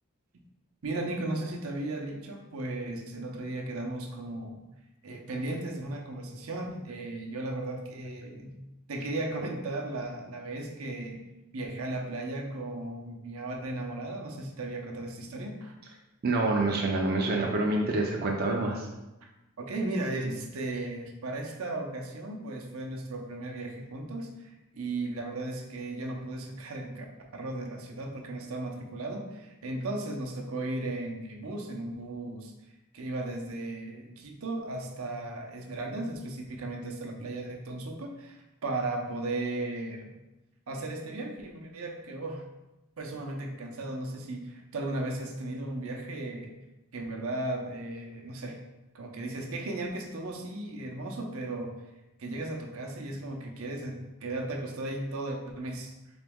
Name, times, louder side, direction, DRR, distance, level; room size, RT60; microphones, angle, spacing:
voice 1, 0.8-4.6 5.0-8.5 8.9-11.2 11.5-15.7 19.2-19.3 19.6-27.1 27.3-32.5 32.9-40.1 40.7-42.4 43.0-46.5 46.9-48.6 48.9-51.7 52.2-55.9, right 2 dB, 80° right, 1 dB, 0.6 m, -36 dB
voice 2, 16.2-18.9, right 2 dB, 45° right, 0 dB, 0.4 m, -27 dB
3.9 x 3.0 x 3.5 m, 1.0 s
head